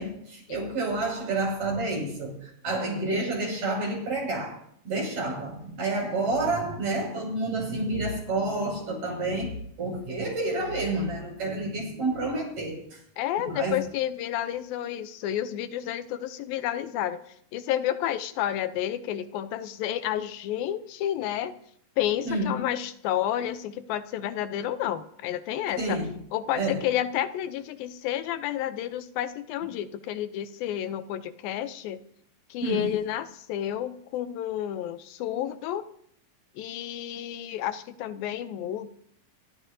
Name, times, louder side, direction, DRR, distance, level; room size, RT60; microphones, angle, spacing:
voice 1, 0.0-4.6 4.8-13.0 13.4-13.8 22.3-22.5 25.8-26.1 26.5-26.8 32.6-32.9, right 2 dB, 50° right, -1 dB, 7.8 m, -29 dB
voice 2, 13.2-17.2 17.5-21.5 22.0-26.0 26.3-32.0 32.5-35.9 36.6-38.9, left 11 dB, 85° left, 11 dB, 2.6 m, -30 dB
27.0 x 14.0 x 2.8 m, 0.67 s
omnidirectional pair, 4.0 m